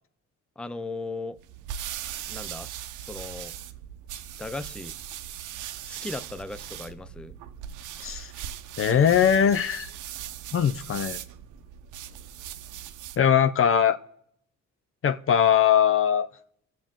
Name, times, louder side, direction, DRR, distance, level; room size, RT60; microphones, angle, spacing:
voice 1, 0.6-1.4 2.3-2.7 3.0-3.5 4.4-5.0 5.8-7.3, left 2 dB, 5° left, 0.5 m, -37 dB
sound 1, 1.4-13.3, right 11 dB, 80° right, 0.7 m, -39 dB
voice 2, 8.8-9.9 10.5-11.2 13.2-14.0 15.0-16.3, left 8 dB, 45° left, 0.6 m, -21 dB
20.5 x 7.5 x 3.6 m
cardioid pair, 90°, 30 cm